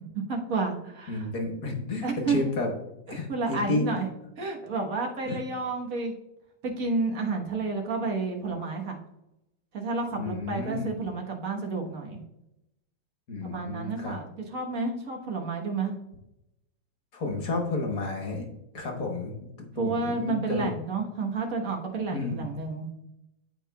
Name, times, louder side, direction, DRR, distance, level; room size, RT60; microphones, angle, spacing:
voice 1, 0.1-1.3 2.0-2.4 3.3-4.1 4.4-6.1 6.6-9.0 9.7-12.2 13.4-16.0 19.7-22.9, right 3 dB, 50° right, 1 dB, 1.6 m, -30 dB
voice 2, 1.1-2.7 3.1-3.9 5.2-5.4 10.1-10.9 13.3-14.2 17.1-18.5 18.7-20.7 22.1-22.5, left 3 dB, 50° left, 2 dB, 1.6 m, -31 dB
13.0 x 4.7 x 2.3 m, 0.87 s
omnidirectional pair, 2.0 m